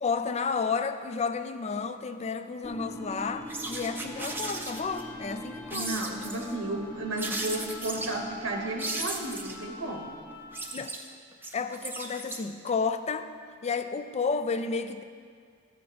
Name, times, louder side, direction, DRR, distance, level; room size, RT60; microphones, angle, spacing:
voice 1, 0.0-6.0 10.7-10.9 11.5-13.3 13.6-15.0, left 5 dB, 30° left, 10 dB, 0.4 m, -31 dB
sound 1, 2.6-10.8, left 1 dB, 10° left, 1.0 m, -42 dB
sound 2, 3.5-5.0 5.7-6.5 7.2-8.2 8.8-9.6 10.3-12.7, right 2 dB, 10° right, 0.6 m, -36 dB
voice 2, 5.7-10.1, right 2 dB, 70° right, 2 dB, 0.9 m, -33 dB
13.5 x 5.1 x 4.3 m, 2.1 s
head